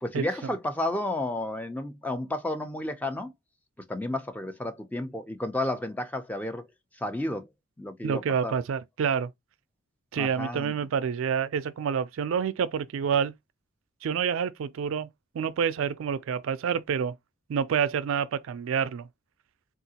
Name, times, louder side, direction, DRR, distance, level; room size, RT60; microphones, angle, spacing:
voice 1, 0.0-3.3 3.9-6.6 7.0-7.5 7.8-8.5 10.1-10.7, left 1 dB, 10° left, 0.4 m, -32 dB
voice 2, 8.0-9.3 10.1-13.3 14.0-15.1 15.3-17.1 17.5-19.1, right 7 dB, 70° right, 0.3 m, -28 dB
3.7 x 2.4 x 2.7 m
head